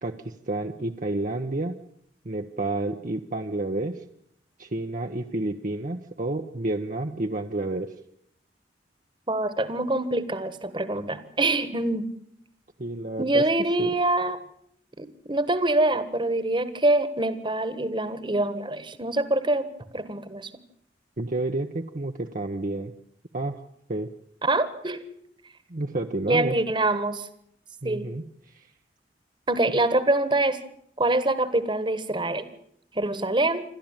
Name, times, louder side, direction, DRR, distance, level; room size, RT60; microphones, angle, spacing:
voice 1, 0.0-1.7 2.2-4.0 4.6-7.9 12.8-13.5 13.8-13.9 21.2-22.9 23.3-23.6 23.9-24.1 25.7-26.6 27.8-28.2 28.5-28.6, right 2 dB, 45° right, 3 dB, 1.0 m, -30 dB
voice 2, 9.3-12.1 13.2-14.4 15.0-19.7 19.9-20.5 24.4-25.0 26.3-27.3 27.8-28.1 29.5-30.6 31.0-32.5 32.9-33.6, right 2 dB, 25° right, 13 dB, 1.6 m, -25 dB
27.5 x 13.0 x 8.9 m, 0.71 s
head